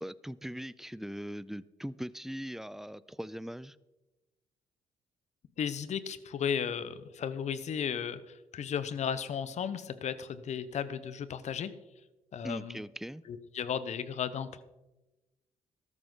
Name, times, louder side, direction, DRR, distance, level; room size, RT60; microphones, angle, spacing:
voice 1, 0.0-3.8 12.4-13.2, equal, 5° right, 18 dB, 0.5 m, -40 dB
voice 2, 5.6-11.7 12.3-12.8 13.3-14.6, left 7 dB, 60° left, 14 dB, 1.0 m, -35 dB
13.5 x 12.5 x 3.9 m, 1.1 s
supercardioid pair, 65°, 13 cm